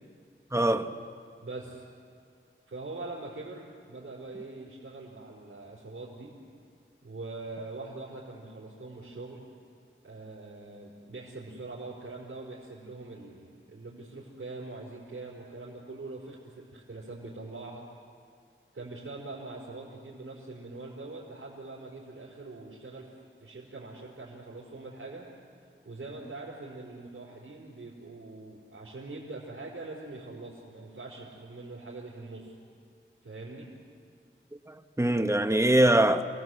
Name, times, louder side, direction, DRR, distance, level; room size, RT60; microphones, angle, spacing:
voice 1, 0.5-0.9 34.7-36.2, right 1 dB, 15° right, 1.4 m, -23 dB
voice 2, 1.4-1.8 2.7-6.3 7.0-9.4 10.0-17.9 18.7-23.1 23.4-25.3 25.8-32.6 33.2-33.7, right 2 dB, 75° right, 4.7 m, -43 dB
29.0 x 19.5 x 8.0 m
wide cardioid pair, 70°, 21 cm